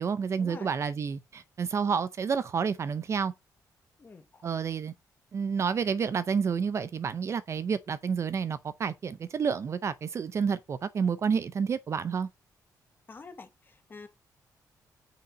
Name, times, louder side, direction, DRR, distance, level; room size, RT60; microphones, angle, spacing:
voice 1, 0.0-3.3 4.4-4.9 5.3-12.3, right 6 dB, 45° right, 0.6 m, -29 dB
voice 2, 4.0-4.4 13.1-14.1, left 4 dB, 30° left, 1.4 m, -47 dB
5.7 x 5.7 x 5.1 m
wide cardioid pair, 145°, 7 cm